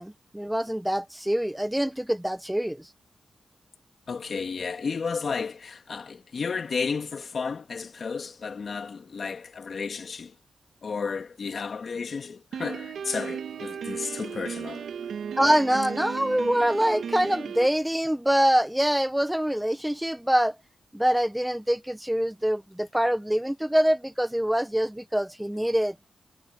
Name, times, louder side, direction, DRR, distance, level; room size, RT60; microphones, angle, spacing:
voice 1, 0.0-2.9 15.4-20.6 20.9-25.9, equal, 5° right, 1.0 m, -25 dB
voice 2, 4.1-10.3 10.8-14.9, left 5 dB, 60° left, 3.1 m, -32 dB
Piano, 12.5-17.7, right 7 dB, 90° right, 2.7 m, -35 dB
cardioid pair, 65°, 0 cm